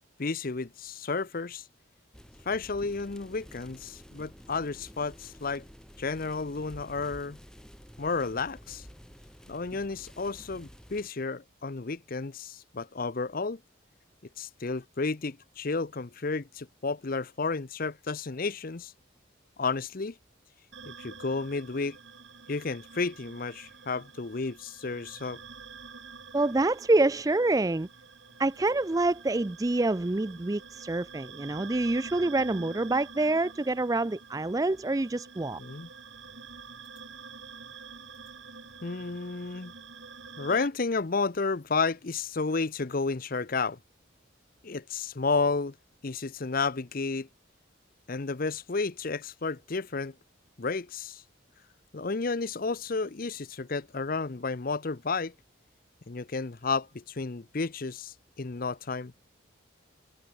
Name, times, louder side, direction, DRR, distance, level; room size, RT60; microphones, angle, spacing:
voice 1, 0.2-1.7 2.5-5.6 6.0-7.4 8.0-8.9 9.5-13.6 14.4-18.9 19.6-20.1 20.9-22.0 22.5-25.4 35.6-35.9 38.8-39.7 40.4-43.8 44.6-45.7 46.0-47.3 48.1-50.1 50.6-51.2 51.9-55.3 56.1-59.1, left 4 dB, 45° left, 0.7 m, -32 dB
sound 1, 2.1-11.1, equal, 5° left, 2.0 m, -50 dB
sound 2, 20.7-40.7, right 5 dB, 60° right, 4.2 m, -48 dB
voice 2, 26.3-27.9 28.4-35.6, right 2 dB, 15° right, 0.4 m, -26 dB
head